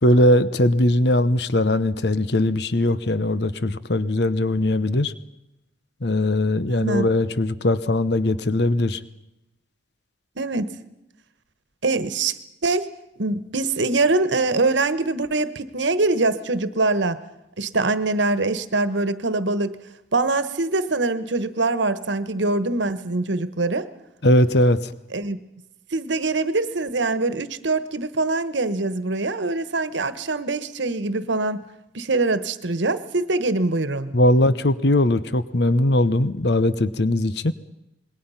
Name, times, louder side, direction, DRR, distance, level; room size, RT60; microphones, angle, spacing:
voice 1, 0.0-5.1 6.0-9.0 24.2-24.9 34.1-37.5, left 1 dB, 60° left, 14 dB, 1.0 m, -20 dB
voice 2, 6.7-7.1 10.4-10.7 11.8-12.9 13.2-17.2 17.6-19.8 20.1-23.9 25.1-25.4 25.9-31.6 31.9-34.2, right 3 dB, 75° right, 13 dB, 1.3 m, -23 dB
26.5 x 21.5 x 5.7 m, 0.89 s
head